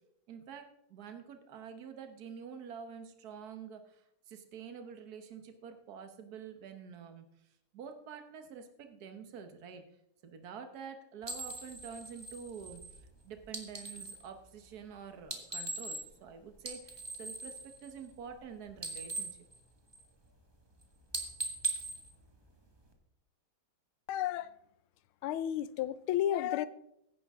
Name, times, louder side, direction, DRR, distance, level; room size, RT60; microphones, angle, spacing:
voice 1, 0.3-4.0 4.3-7.2 7.7-9.8 10.2-12.8 13.2-19.4, right 6 dB, 50° right, 1.6 m, -47 dB
sound 1, 11.2-14.3 15.2-16.3 16.6-18.4 18.7-20.3 20.6-20.8 21.1-22.9, right 2 dB, 15° right, 1.4 m, -41 dB
voice 2, 24.1-24.5 25.2-26.7, left 11 dB, 85° left, 1.5 m, -32 dB
16.5 x 9.9 x 3.7 m
omnidirectional pair, 2.3 m